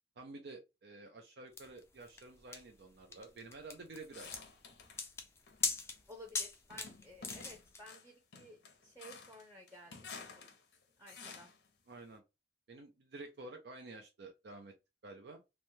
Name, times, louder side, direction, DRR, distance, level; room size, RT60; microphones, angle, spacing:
voice 1, 0.2-4.4 11.9-12.2 12.7-14.7 15.0-15.4, right 2 dB, 70° right, 0.5 m, -50 dB
sound 1, 1.6-7.8, left 4 dB, 15° left, 0.3 m, -41 dB
sound 2, 4.1-5.0 5.5-6.0 6.7-11.7, left 5 dB, 75° left, 0.7 m, -52 dB
voice 2, 6.1-10.6 11.0-11.5, equal, 15° right, 0.7 m, -55 dB
3.1 x 2.1 x 2.6 m
head